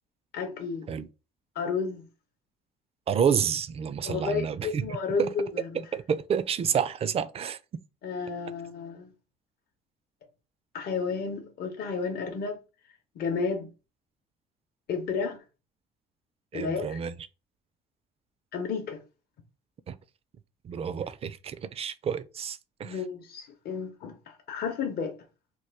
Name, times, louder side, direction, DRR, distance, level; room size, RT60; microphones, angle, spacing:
voice 1, 0.3-0.9 1.5-2.1 4.0-5.8 8.0-9.1 10.7-12.6 13.2-13.7 14.9-15.4 16.5-17.0 18.5-19.0 22.8-25.2, left 5 dB, 60° left, 0.7 m, -32 dB
voice 2, 3.1-4.8 5.9-7.6 16.5-17.1 19.9-20.0 20.6-23.0, right 7 dB, 35° right, 0.4 m, -29 dB
3.0 x 2.2 x 3.3 m
supercardioid pair, 75°, 18 cm